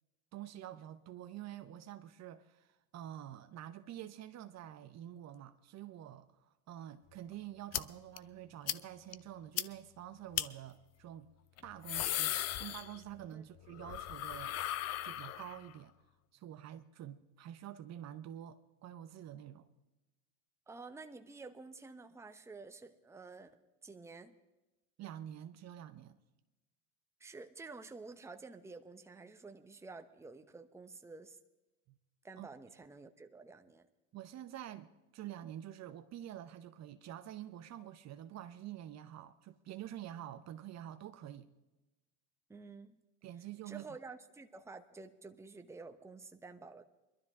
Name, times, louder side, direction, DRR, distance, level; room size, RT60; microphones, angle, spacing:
voice 1, 0.3-11.3 11.6-14.6 15.0-15.9 16.3-19.7 25.0-26.2 31.9-32.0 32.4-32.5 34.1-41.5 43.2-43.9, right 11 dB, 40° right, 0.8 m, -48 dB
sound 1, 7.7-7.8 8.2-8.3 8.7-8.8 9.1-9.2 9.6-9.7 10.3-10.5 11.6-13.3 13.6-15.7, left 13 dB, 40° left, 0.6 m, -37 dB
voice 2, 20.7-24.4 27.2-31.4 32.2-33.9 42.5-43.0 43.7-46.8, right 3 dB, 5° right, 0.9 m, -51 dB
21.5 x 12.5 x 3.6 m
hypercardioid pair, 95°, 41 cm